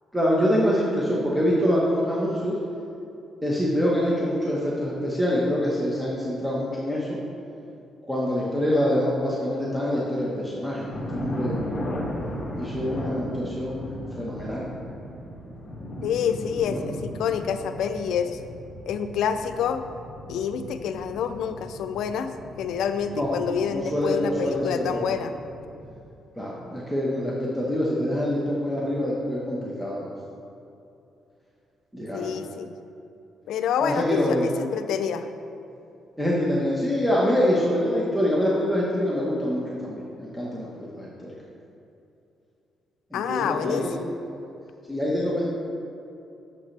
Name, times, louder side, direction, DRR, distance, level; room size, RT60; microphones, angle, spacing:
voice 1, 0.1-2.6 3.4-7.2 8.1-11.6 12.5-13.9 14.2-14.7 16.7-16.8 23.1-23.3 23.7-25.0 26.4-30.1 31.9-32.3 33.8-34.5 36.2-41.3 43.1-43.8 44.9-45.4, equal, 5° right, -5 dB, 1.3 m, -25 dB
sound 1, 10.9-25.9, equal, 25° left, 2.0 m, -36 dB
voice 2, 16.0-18.4 18.9-19.8 20.3-25.3 32.1-32.7 33.5-35.3 43.1-44.1, left 7 dB, 80° left, 9 dB, 0.4 m, -27 dB
8.6 x 7.3 x 3.4 m, 2.7 s
cardioid pair, 90°, 0 cm